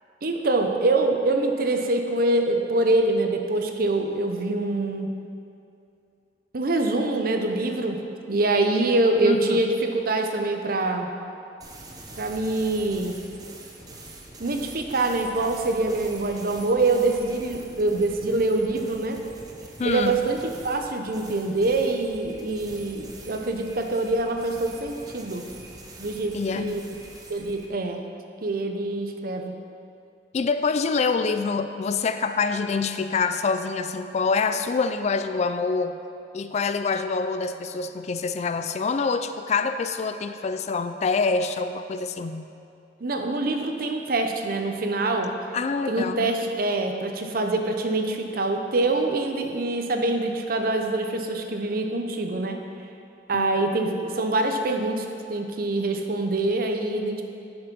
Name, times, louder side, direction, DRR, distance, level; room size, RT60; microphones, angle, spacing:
voice 1, 0.2-5.1 6.5-8.0 8.3-11.1 12.2-13.2 14.4-19.2 19.8-20.4 20.6-25.4 26.0-26.8 27.3-28.0 28.4-29.6 43.0-45.3 45.9-52.6 53.3-57.2, right 2 dB, 55° right, 4 dB, 0.7 m, -25 dB
voice 2, 9.2-9.6 19.8-20.2 26.3-26.8 30.3-36.0 36.3-42.5 45.5-46.3 53.3-54.0, left 4 dB, 40° left, 9 dB, 0.3 m, -26 dB
sound 1, 11.6-27.7, right 2 dB, 20° right, 0.9 m, -44 dB
9.5 x 5.9 x 5.3 m, 2.5 s
head